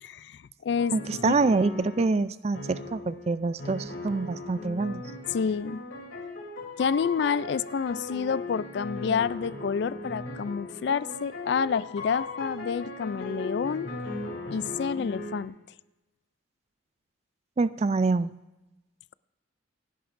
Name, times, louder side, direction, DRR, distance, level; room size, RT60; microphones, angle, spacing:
voice 1, 0.0-1.0 1.2-1.3 5.3-5.8 6.8-13.9 14.5-15.5, left 6 dB, 60° left, 18 dB, 0.3 m, -29 dB
sound 1, 0.8-2.1 2.5-3.3 3.6-15.4, left 2 dB, 80° left, 3.0 m, -38 dB
voice 2, 0.9-5.0 17.6-18.3, right 3 dB, 30° right, 15 dB, 0.3 m, -26 dB
27.0 x 11.0 x 2.6 m, 1.0 s
head